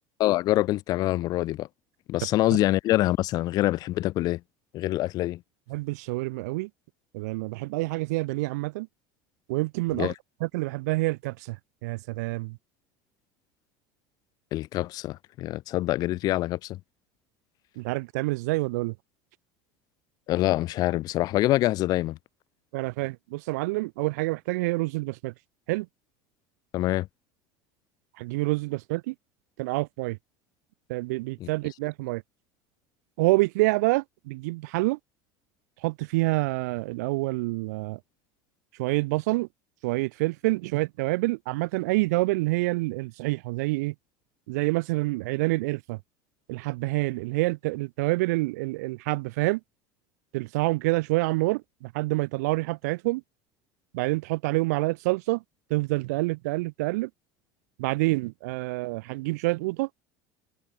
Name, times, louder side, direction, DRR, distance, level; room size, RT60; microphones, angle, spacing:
voice 1, 0.2-1.7 2.1-4.4 4.7-5.4 9.9-10.1 14.5-16.8 20.3-22.2 26.7-27.1 31.4-31.5, left 16 dB, 50° left, 0.5 m, -25 dB
voice 2, 5.7-6.7 7.1-8.9 9.5-10.1 10.4-11.6 11.8-12.6 17.8-18.9 22.7-25.3 25.7-25.9 28.2-29.1 29.6-30.2 30.9-32.2 33.2-35.0 35.8-38.0 38.8-39.5 39.8-43.9 44.5-46.0 46.5-49.6 50.3-53.2 53.9-55.4 55.7-57.1 57.8-59.9, right 22 dB, 90° right, 1.0 m, -27 dB
supercardioid pair, 130°, 9 cm